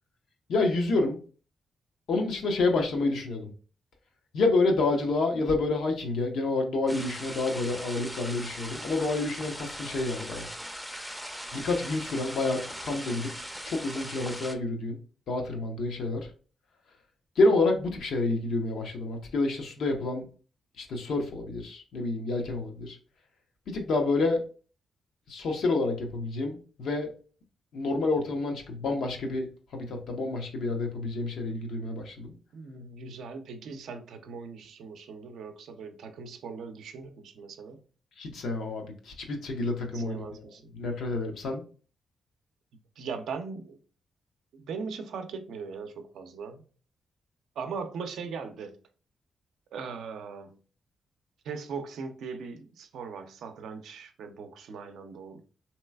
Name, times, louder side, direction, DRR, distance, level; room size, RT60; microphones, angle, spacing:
voice 1, 0.5-1.2 2.1-3.5 4.3-10.5 11.5-13.3 13.6-15.0 15.3-16.3 17.4-20.3 20.8-23.0 23.7-24.4 25.3-27.1 27.7-32.3 38.2-40.4 40.7-41.6, left 2 dB, 80° left, 0.7 m, -28 dB
sound 1, 6.9-14.5, equal, 5° left, 0.5 m, -40 dB
voice 2, 32.3-37.8 39.8-40.6 43.0-43.8 44.5-46.6 47.6-48.8 49.7-50.6 51.4-55.4, right 5 dB, 80° right, 0.4 m, -39 dB
3.1 x 2.9 x 2.2 m
cardioid pair, 70°, 0 cm